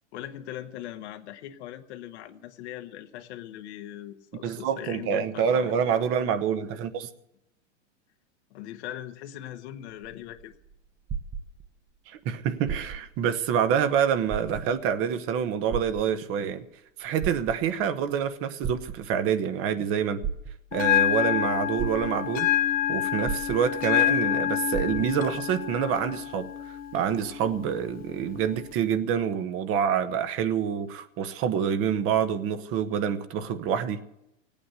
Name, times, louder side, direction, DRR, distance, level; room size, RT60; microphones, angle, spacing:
voice 1, 0.1-5.7 8.5-10.5, left 12 dB, 55° left, 7 dB, 1.2 m, -40 dB
voice 2, 4.4-7.1 12.1-16.6 17.0-20.2 20.7-22.5 22.9-26.5 26.9-34.0, right 8 dB, 35° right, 11 dB, 1.2 m, -27 dB
sound 1, 9.9-12.0 12.6-13.2 13.7-13.8 14.2-15.0 15.7-16.5 17.0-17.9 18.6-19.4 20.2-20.9 21.4-21.5 21.8-22.5 23.2-24.1 24.3-24.4 24.7-25.4 26.1-26.2, right 7 dB, 20° right, 1.0 m, -35 dB
Bell, 20.7-28.7, left 11 dB, 20° left, 0.9 m, -28 dB
17.5 x 8.8 x 8.1 m, 0.83 s
hypercardioid pair, 125°, 39 cm